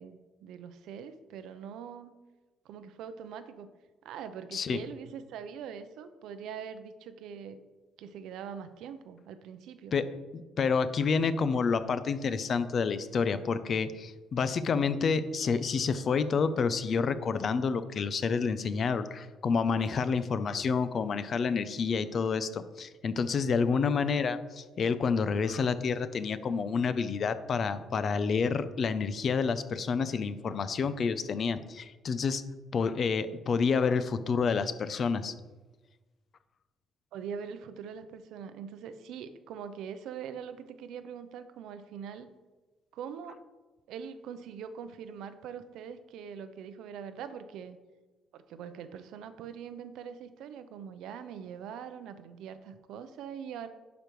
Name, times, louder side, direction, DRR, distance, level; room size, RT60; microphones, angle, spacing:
voice 1, 0.0-2.1 2.6-3.7 4.0-7.6 8.0-9.9 37.1-42.3 42.9-43.4 43.9-47.8 48.3-53.7, right 7 dB, 80° right, 11 dB, 0.6 m, -43 dB
voice 2, 10.3-32.4 32.7-35.3, left 5 dB, 40° left, 13 dB, 0.4 m, -29 dB
11.0 x 5.1 x 3.1 m, 1.2 s
cardioid pair, 155°, 0 cm